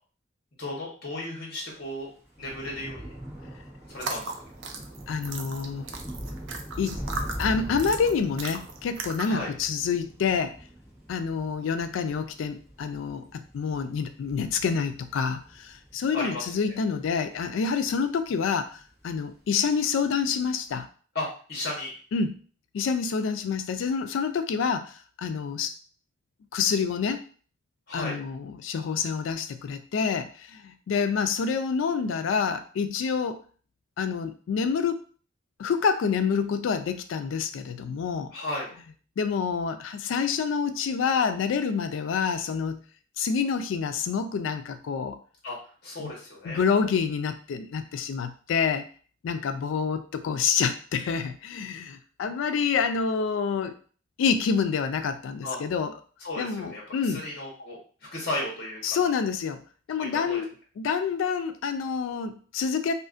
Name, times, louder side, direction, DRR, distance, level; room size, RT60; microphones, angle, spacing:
voice 1, 0.6-2.1 2.4-3.1 3.9-4.2 9.2-9.5 16.1-16.4 21.1-21.9 27.9-28.2 38.3-38.7 45.4-45.6 45.8-46.6 55.4-55.6 56.2-57.8 58.1-59.0 60.0-60.4, left 2 dB, 50° left, -3 dB, 0.9 m, -34 dB
Thunder / Rain, 1.8-18.4 18.7-19.2 19.5-19.6, equal, 15° right, 1.0 m, -42 dB
sound 1, 3.9-9.4, right 4 dB, 75° right, 0.4 m, -37 dB
voice 2, 5.1-5.8 6.8-7.0 7.4-10.6 11.1-18.8 19.0-20.9 22.1-22.3 22.7-25.7 26.5-27.2 27.9-33.4 34.0-35.0 35.6-38.3 39.2-42.8 43.2-45.2 46.0-46.1 46.4-48.9 49.2-53.7 54.2-55.9 56.4-57.2 58.8-59.6 59.9-62.9, left 6 dB, 80° left, 9 dB, 0.3 m, -27 dB
2.5 x 2.4 x 2.4 m, 0.41 s
head